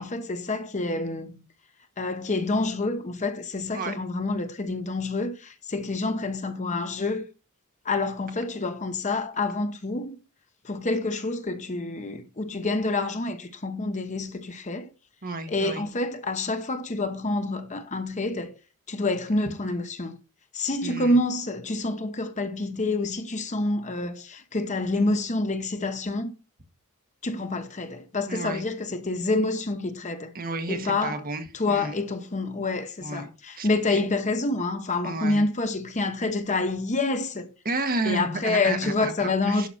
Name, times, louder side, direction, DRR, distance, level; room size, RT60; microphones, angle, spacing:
voice 1, 0.0-1.4 2.0-7.3 7.8-10.2 10.6-14.9 15.5-18.6 18.9-20.2 20.5-26.3 27.2-30.3 30.7-31.2 31.5-37.5 38.0-39.7, left 2 dB, 35° left, 1.0 m, -27 dB
voice 2, 15.2-15.8 20.8-21.1 28.3-28.6 30.3-31.9 33.0-33.3 33.6-34.0 35.0-35.4 37.6-39.7, right 3 dB, 40° right, 1.4 m, -32 dB
11.5 x 5.8 x 4.2 m
head